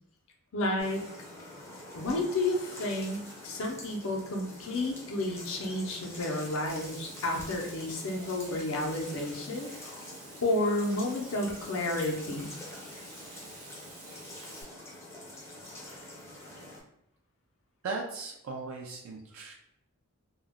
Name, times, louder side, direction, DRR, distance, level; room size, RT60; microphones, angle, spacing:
voice 1, 0.5-1.0 1.9-10.1 10.4-12.5, left 2 dB, 70° left, 0 dB, 0.5 m, -31 dB
sound 1, 0.8-16.8, left 1 dB, 10° left, 0.5 m, -46 dB
Frying (food), 6.7-14.6, right 3 dB, 85° right, 0.7 m, -51 dB
voice 2, 17.8-19.5, right 3 dB, 65° right, 0 dB, 0.3 m, -37 dB
2.2 x 2.1 x 3.4 m, 0.77 s
head